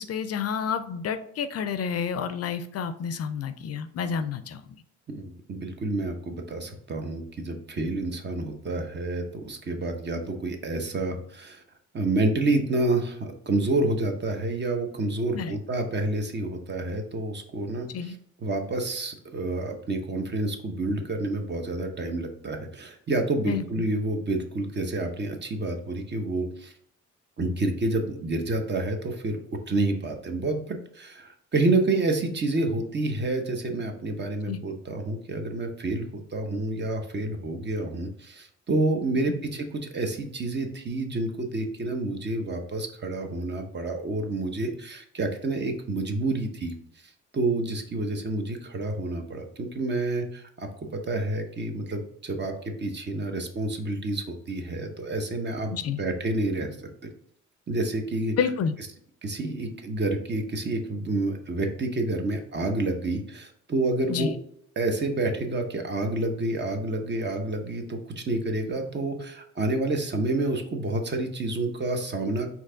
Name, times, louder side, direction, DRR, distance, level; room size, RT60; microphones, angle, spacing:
voice 1, 0.0-4.6 15.3-15.6 17.9-18.1 23.4-23.9 34.5-34.6 55.7-56.0 58.4-58.7 64.1-64.4, left 7 dB, 55° left, 11 dB, 0.5 m, -29 dB
voice 2, 5.1-11.6 11.9-26.7 27.4-46.7 47.3-57.1 57.7-58.4 59.2-64.3 64.8-72.5, right 2 dB, 35° right, 5 dB, 0.9 m, -29 dB
4.4 x 2.8 x 3.8 m, 0.68 s
cardioid pair, 90°, 30 cm